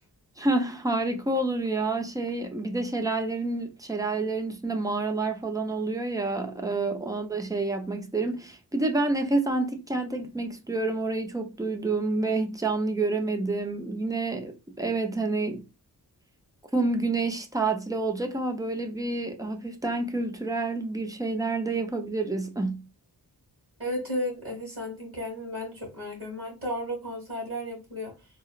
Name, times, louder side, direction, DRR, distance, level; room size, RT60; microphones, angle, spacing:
voice 1, 0.4-15.6 16.7-22.9, right 3 dB, 10° right, 0.4 m, -28 dB
voice 2, 23.8-28.1, equal, 35° right, 1.7 m, -34 dB
3.8 x 2.0 x 2.4 m
wide cardioid pair, 115°, 39 cm